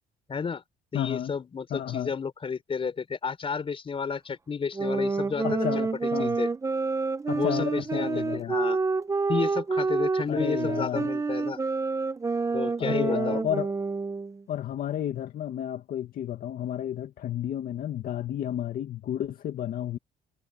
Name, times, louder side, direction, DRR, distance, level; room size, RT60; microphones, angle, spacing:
voice 1, 0.3-0.6 0.9-5.7 6.0-6.5 7.3-8.8 9.3-11.6 12.5-13.4, left 5 dB, 35° left, 5.0 m, -31 dB
voice 2, 0.9-1.3 1.7-2.1 5.4-6.4 7.3-8.6 10.3-11.1 12.8-13.7 14.5-20.0, left 10 dB, 60° left, 2.0 m, -31 dB
sound 1, 4.7-14.4, right 4 dB, 20° right, 0.8 m, -28 dB
cardioid pair, 110°, 17 cm